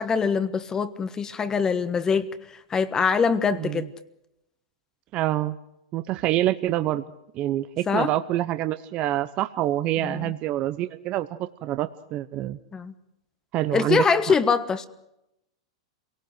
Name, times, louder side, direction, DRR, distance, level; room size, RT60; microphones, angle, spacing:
voice 1, 0.0-2.3 2.7-3.9 7.9-8.1 10.0-10.3 12.7-12.9 13.7-14.9, left 5 dB, 20° left, 1.3 m, -23 dB
voice 2, 5.1-5.6 5.9-7.0 7.3-12.6 13.5-14.0, right 14 dB, 40° right, 0.9 m, -26 dB
27.0 x 18.0 x 7.9 m
hypercardioid pair, 110°, 3 cm